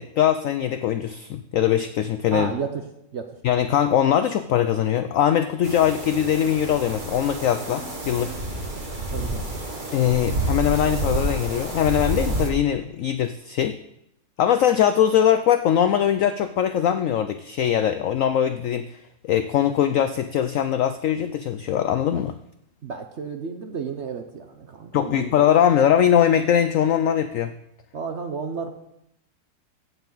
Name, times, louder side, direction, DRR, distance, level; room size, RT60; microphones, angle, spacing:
voice 1, 0.0-2.5 3.4-8.4 9.9-13.8 14.4-18.9 19.2-22.3 24.9-27.5, left 10 dB, 85° left, 10 dB, 0.7 m, -21 dB
voice 2, 2.3-2.9 3.1-3.4 9.1-9.5 22.1-22.2 22.8-25.4 27.9-28.7, right 5 dB, 55° right, 6 dB, 0.8 m, -32 dB
sound 1, 5.6-12.5, right 1 dB, 30° right, 1.5 m, -29 dB
15.5 x 7.0 x 3.9 m, 0.80 s
omnidirectional pair, 1.9 m